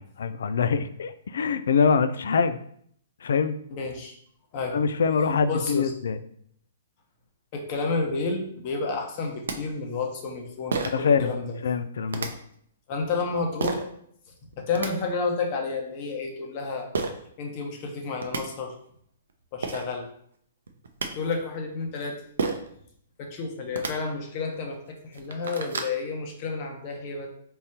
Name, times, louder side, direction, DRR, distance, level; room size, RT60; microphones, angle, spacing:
voice 1, 0.0-2.6 3.2-3.6 4.7-6.2 10.9-11.3 11.6-12.3, left 5 dB, 70° left, 12 dB, 0.3 m, -24 dB
voice 2, 3.7-4.2 4.5-4.8 5.4-5.9 7.5-11.6 12.1-12.3 12.9-13.8 14.6-16.9 17.4-18.7 19.5-20.1 21.1-22.2 23.2-27.3, left 4 dB, 40° left, 2 dB, 1.0 m, -30 dB
sound 1, 9.1-9.2 9.5-9.6 10.7-11.1 12.1-12.3 13.6-13.9 14.5-14.9 16.9-17.1 17.9-18.0 18.2-18.4 19.3-19.4 19.6-19.8 20.7-21.1 22.4-22.7 23.6-23.9 24.6-24.7 25.0-25.9, right 4 dB, 70° right, 0.6 m, -29 dB
4.1 x 3.7 x 2.8 m, 0.66 s
hypercardioid pair, 125°, 0 cm